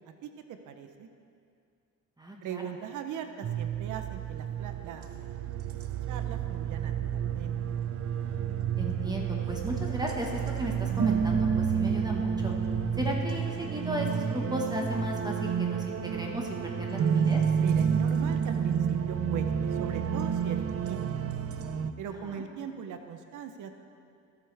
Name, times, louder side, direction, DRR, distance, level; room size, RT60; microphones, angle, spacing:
voice 1, 0.2-1.1 2.4-5.2 6.1-7.6 17.6-21.2 22.0-23.7, right 8 dB, 80° right, 7 dB, 0.8 m, -40 dB
voice 2, 2.2-2.6 8.8-12.5 12.9-17.4 22.2-22.4, equal, 15° right, -1 dB, 1.5 m, -35 dB
sound 1, 3.4-21.9, right 7 dB, 50° right, 0.6 m, -30 dB
21.0 x 8.2 x 3.5 m, 2.4 s
cardioid pair, 90°, 30 cm